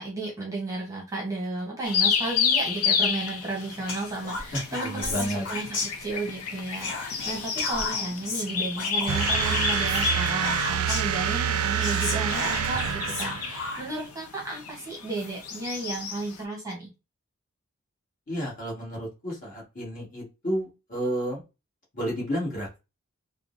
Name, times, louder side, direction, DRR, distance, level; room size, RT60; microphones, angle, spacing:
voice 1, 0.0-16.9, right 2 dB, 15° right, -2 dB, 0.8 m, -33 dB
sound 1, 1.8-16.4, left 6 dB, 75° left, 0.5 m, -30 dB
Whispering, 3.9-6.4 6.7-11.2 11.5-11.6 11.8-14.1, left 3 dB, 55° left, 0.9 m, -34 dB
voice 2, 4.5-5.4 18.3-21.4 21.9-22.8, equal, 40° left, -4 dB, 1.4 m, -31 dB
sound 2, 9.1-13.8, right 9 dB, 70° right, 0.3 m, -27 dB
3.6 x 2.0 x 2.4 m, 0.27 s
head